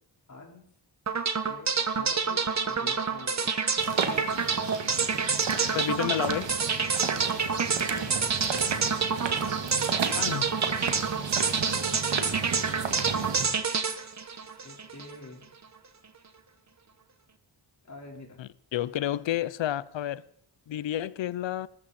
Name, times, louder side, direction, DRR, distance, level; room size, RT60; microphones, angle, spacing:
voice 1, 0.3-0.6 1.5-3.6 7.9-8.3 12.7-13.4 14.6-15.4 17.8-18.4, left 3 dB, 40° left, 4.5 m, -47 dB
sound 1, 1.1-15.1, right 5 dB, 40° right, 1.4 m, -28 dB
sound 2, 3.8-13.5, right 6 dB, 75° right, 2.0 m, -34 dB
voice 2, 5.7-6.5 10.2-10.5 18.4-20.2 20.7-21.7, left 12 dB, 90° left, 0.7 m, -30 dB
20.5 x 13.5 x 4.3 m
cardioid pair, 85°, 44 cm